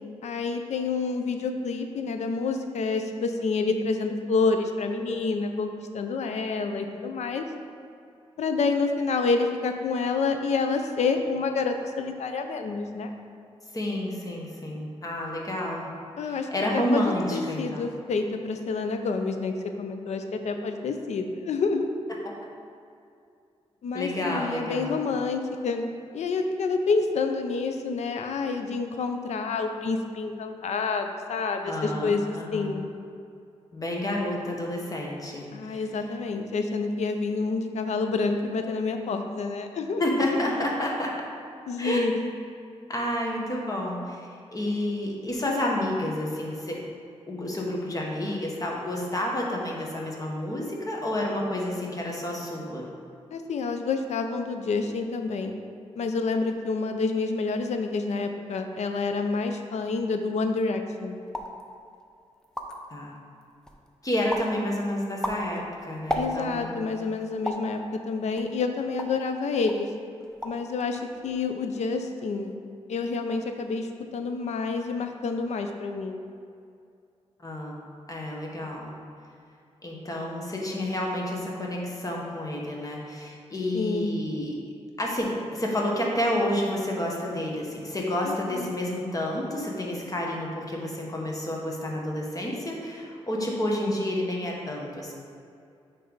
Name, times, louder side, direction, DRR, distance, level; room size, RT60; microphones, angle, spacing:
voice 1, 0.2-7.4 8.4-13.1 16.2-17.0 17.3-21.8 23.8-25.8 26.1-32.9 35.5-40.0 40.3-40.7 41.7-42.3 53.3-55.6 56.0-61.2 66.1-69.9 70.4-72.5 72.9-76.3 83.7-84.2 88.2-88.8, left 4 dB, 80° left, 6 dB, 0.5 m, -28 dB
voice 2, 13.7-15.9 16.2-17.9 23.9-25.0 31.6-32.7 33.7-35.8 40.0-41.1 41.8-42.0 42.9-46.8 47.3-52.9 62.9-63.2 64.0-66.8 77.4-77.8 78.1-78.9 79.8-84.5 85.0-95.1, left 1 dB, 30° left, -2 dB, 1.3 m, -30 dB
sound 1, 61.3-61.6 62.1-62.2 62.4-62.9 63.4-63.9 64.3-64.6 65.0-66.7 67.4-67.7 68.4-69.3 69.7-69.9 70.2-70.7 70.9-71.4, equal, 5° left, 0.7 m, -33 dB
9.2 x 3.3 x 3.9 m, 2.4 s
cardioid pair, 75°, 11 cm